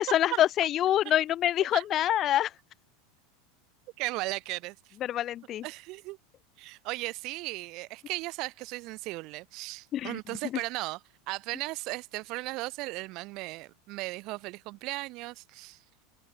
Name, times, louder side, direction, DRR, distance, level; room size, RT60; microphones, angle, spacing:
voice 1, 0.0-2.5 5.0-5.6 9.9-10.2, left 12 dB, 35° left, 0.3 m, -26 dB
voice 2, 4.0-4.8 5.6-6.2 6.6-15.8, right 22 dB, 50° right, 0.8 m, -36 dB
supercardioid pair, 130°, 0 cm